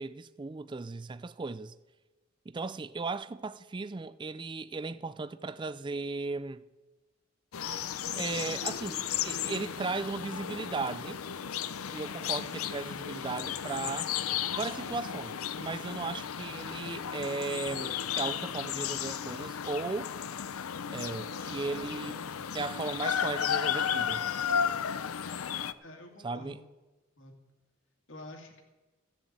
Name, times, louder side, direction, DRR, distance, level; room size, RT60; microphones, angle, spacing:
voice 1, 0.0-1.7 2.5-6.6 8.2-11.2 11.9-14.1 14.5-20.1 20.9-22.2 22.5-24.3 26.2-26.6, right 3 dB, 20° right, 0.4 m, -36 dB
sound 1, 7.5-25.7, left 8 dB, 85° left, 0.6 m, -34 dB
voice 2, 25.8-26.6 27.2-27.4 28.1-28.6, left 2 dB, 60° left, 2.5 m, -48 dB
15.0 x 7.3 x 8.8 m
head